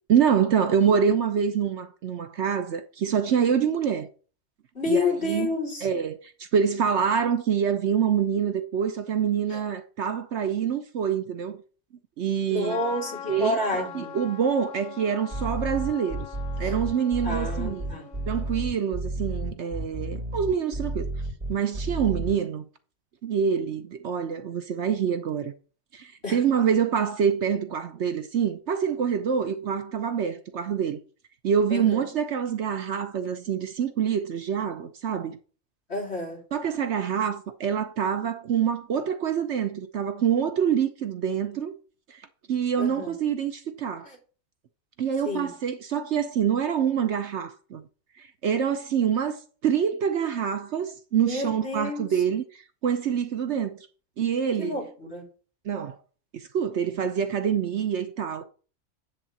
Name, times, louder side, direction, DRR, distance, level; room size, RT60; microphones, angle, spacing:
voice 1, 0.1-4.1 4.9-5.5 5.8-11.6 12.2-12.8 13.3-16.3 16.6-17.9 18.3-21.1 21.5-22.6 23.2-25.5 25.9-31.0 31.4-35.4 36.5-41.7 42.1-42.2 42.5-44.1 45.0-47.8 48.2-53.9 54.2-54.8 55.6-56.0 56.3-58.5, right 7 dB, 60° right, 1.0 m, -26 dB
voice 2, 4.8-5.9 9.5-9.6 12.5-14.2 16.6-16.7 17.2-18.1 26.2-26.4 31.7-32.0 35.9-36.4 42.8-43.1 44.0-44.2 45.2-45.5 51.3-52.1 54.6-55.3, left 2 dB, 50° left, 3.4 m, -29 dB
Trumpet, 12.6-18.8, left 8 dB, 75° left, 1.6 m, -42 dB
sound 1, 15.3-22.3, right 1 dB, 35° right, 2.9 m, -31 dB
10.0 x 3.7 x 7.2 m
omnidirectional pair, 1.4 m